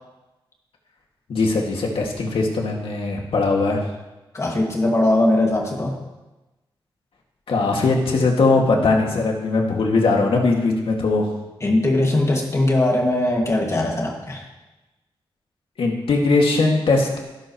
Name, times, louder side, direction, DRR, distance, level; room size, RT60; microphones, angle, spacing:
voice 1, 1.3-3.8 7.5-11.3 15.8-17.2, left 3 dB, 80° left, 0 dB, 2.2 m, -20 dB
voice 2, 4.3-6.0 11.6-14.4, left 1 dB, 30° left, 0 dB, 2.1 m, -20 dB
16.5 x 12.5 x 3.1 m, 1.1 s
wide cardioid pair, 155°, 9 cm